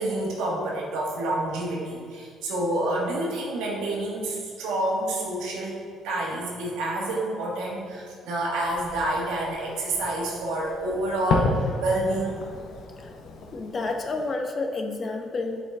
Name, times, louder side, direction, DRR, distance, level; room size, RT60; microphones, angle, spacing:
voice 1, 0.0-5.7 6.0-12.4, right 1 dB, 90° right, -3 dB, 1.5 m, -28 dB
Fireworks, 8.6-14.3, left 3 dB, 70° left, 0.7 m, -32 dB
voice 2, 13.5-15.6, left 3 dB, 35° left, 3 dB, 0.8 m, -30 dB
7.4 x 5.1 x 3.6 m, 2.1 s
cardioid pair, 95°, 0 cm